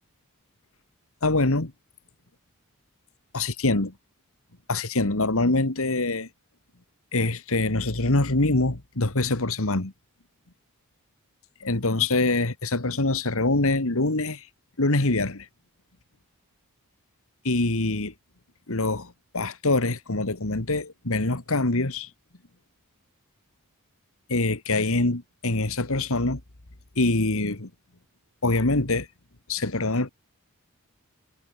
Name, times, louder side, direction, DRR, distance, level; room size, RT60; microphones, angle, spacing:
voice 1, 1.2-1.7 3.3-3.9 4.7-6.3 7.1-9.9 11.6-14.5 14.8-15.5 17.4-18.1 18.7-22.1 24.3-26.4 27.0-27.7 28.4-29.1 29.5-30.1, left 2 dB, 65° left, 2.0 m, -24 dB
head